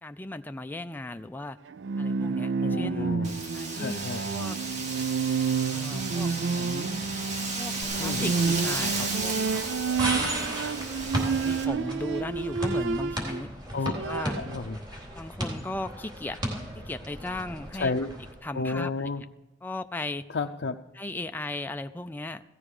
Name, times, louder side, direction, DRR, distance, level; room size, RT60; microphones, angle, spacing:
voice 1, 0.0-1.6 2.0-3.1 3.5-4.6 5.7-6.9 7.6-7.7 8.0-9.4 10.0-10.5 11.4-14.3 15.2-16.4 16.8-17.9 18.4-19.1 19.6-20.2 20.9-22.4, left 2 dB, 10° left, 8 dB, 0.4 m, -37 dB
Bowed string instrument, 1.7-13.4 13.8-14.6, right 5 dB, 75° right, 0.4 m, -30 dB
voice 2, 2.6-3.4 3.8-4.2 8.0-8.3 10.3-10.4 13.7-13.9 14.3-14.8 17.7-18.1 18.5-19.2 20.3-20.8, left 3 dB, 65° left, 3 dB, 0.6 m, -31 dB
Wind, 3.2-11.6, right 3 dB, 40° right, 2.1 m, -34 dB
sound 1, 7.8-18.3, right 1 dB, 25° right, 3.7 m, -35 dB
16.5 x 14.5 x 5.0 m, 0.97 s
head